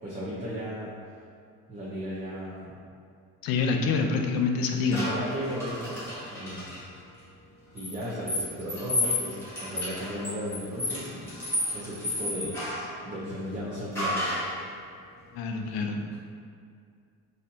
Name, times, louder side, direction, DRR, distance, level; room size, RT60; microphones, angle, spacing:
voice 1, 0.0-0.9 1.7-2.8 4.9-5.9 6.3-6.7 7.7-11.4 11.7-12.6 13.0-14.3 15.6-16.2, equal, 25° right, -9 dB, 0.6 m, -35 dB
voice 2, 3.4-5.0 15.3-16.0, left 4 dB, 80° left, 3 dB, 0.5 m, -26 dB
sound 1, 4.9-6.8 7.8-12.9 13.9-14.6, left 1 dB, 5° left, 1.1 m, -32 dB
4.1 x 2.8 x 2.7 m, 2.2 s
cardioid pair, 140°, 35 cm